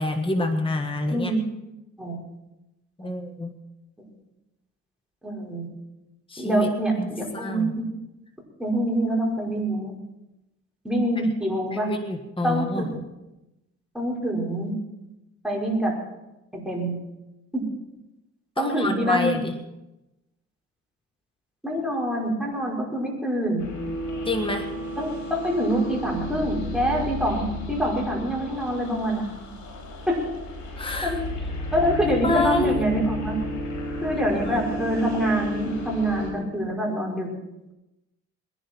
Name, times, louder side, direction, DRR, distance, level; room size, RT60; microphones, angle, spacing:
voice 1, 0.0-1.3 3.0-3.5 6.3-7.1 7.3-7.7 11.7-12.9 18.6-19.6 24.2-24.7 30.8-31.2 31.6-31.7 32.1-32.8 34.5-34.6, left 2 dB, 15° left, 5 dB, 1.6 m, -27 dB
voice 2, 1.1-1.5 2.0-2.2 3.0-3.1 4.0-4.1 5.2-5.7 6.4-7.8 8.6-9.9 10.8-11.9 12.4-13.0 13.9-14.7 15.4-15.9 16.5-16.9 17.5-17.6 18.6-19.4 21.6-23.7 25.0-29.2 30.1-30.2 31.0-31.2 31.7-33.4 34.0-37.3, right 1 dB, ahead, -3 dB, 5.5 m, -25 dB
sound 1, 23.6-36.3, left 1 dB, 70° left, 4.7 m, -33 dB
21.5 x 11.0 x 4.6 m, 0.96 s
cardioid pair, 90°, 30 cm